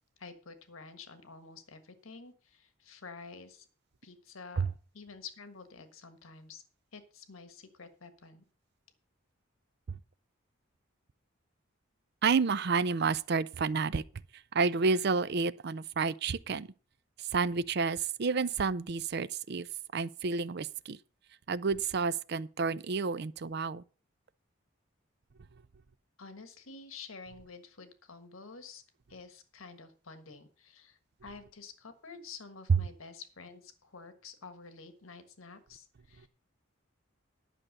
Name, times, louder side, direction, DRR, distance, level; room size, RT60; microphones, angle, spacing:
voice 1, 0.2-3.7 4.0-4.6 4.9-6.6 6.9-8.4 26.2-28.8 29.1-36.3, left 4 dB, 85° left, 1.4 m, -49 dB
voice 2, 12.2-14.0 14.5-16.7 17.2-19.7 19.9-21.0 21.5-23.8 32.7-32.8, right 4 dB, 50° right, 0.5 m, -30 dB
11.0 x 6.1 x 6.5 m
head